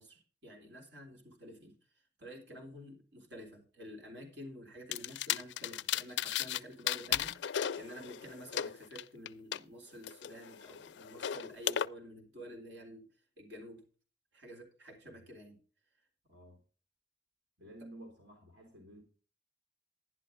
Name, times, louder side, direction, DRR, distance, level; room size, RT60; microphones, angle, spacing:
voice 1, 0.0-13.1 13.4-13.8 14.3-15.6 17.8-17.9, equal, 70° right, 1 dB, 3.5 m, -50 dB
sound 1, 4.9-6.6 6.9-9.6 10.0-11.9, left 10 dB, 70° left, 0.4 m, -35 dB
voice 2, 16.3-16.6 17.6-19.0, right 1 dB, 85° right, 1 dB, 3.2 m, -52 dB
11.0 x 11.0 x 3.9 m, 0.38 s
head